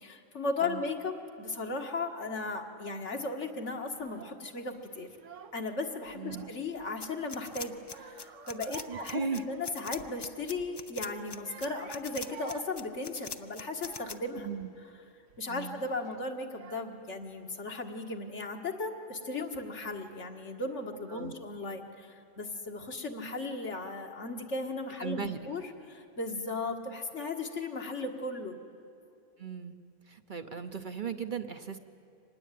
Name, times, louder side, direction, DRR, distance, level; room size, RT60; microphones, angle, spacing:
voice 1, 0.0-5.1 5.5-14.5 15.4-28.6, left 3 dB, 70° left, 3 dB, 2.0 m, -36 dB
Child speech kid speaking / Crying sobbing, 3.9-4.4 5.1-5.7 6.1-6.9 7.3-10.2 10.5-10.8 11.3-14.4 15.0-15.4 16.2-16.3 16.5-17.2, right 7 dB, 80° right, 1.3 m, -51 dB
sound 1, 7.0-14.2, left 4 dB, 30° left, 0.5 m, -42 dB
voice 2, 8.9-9.4 14.4-14.7 15.5-15.8 21.1-21.3 25.0-25.4 29.4-29.7 30.0-31.8, right 6 dB, 45° right, 7 dB, 1.0 m, -37 dB
25.0 x 19.5 x 9.3 m, 2.6 s
omnidirectional pair, 1.3 m